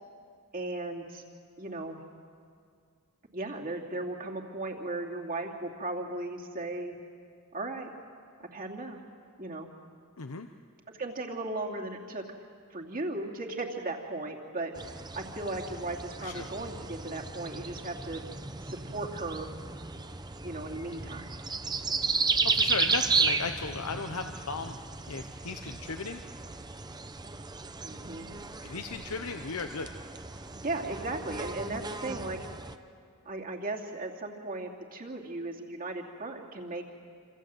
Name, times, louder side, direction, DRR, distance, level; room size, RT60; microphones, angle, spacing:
voice 1, 0.5-1.2 1.6-2.0 3.3-7.0 7.5-7.9 8.4-9.0 9.4-9.7 10.9-12.2 12.7-14.7 15.2-18.2 18.6-19.5 20.4-21.3 27.8-28.3 30.6-32.4 33.2-36.8, right 2 dB, 40° right, 0 dB, 2.8 m, -36 dB
sound 1, 14.8-32.8, right 4 dB, 20° right, 0.9 m, -34 dB
voice 2, 22.4-24.8 25.1-26.2 28.6-29.9, left 4 dB, 85° left, 6 dB, 1.0 m, -36 dB
27.5 x 27.0 x 7.9 m, 2.3 s
head